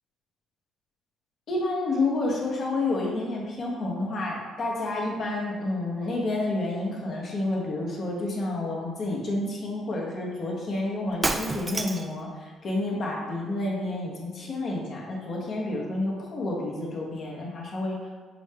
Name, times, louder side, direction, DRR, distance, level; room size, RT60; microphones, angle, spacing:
voice 1, 1.5-18.0, left 2 dB, 55° left, -2 dB, 1.1 m, -29 dB
Shatter, 11.1-12.2, right 2 dB, 25° right, 0.4 m, -29 dB
6.1 x 2.1 x 3.4 m, 1.5 s
supercardioid pair, 65°, 0 cm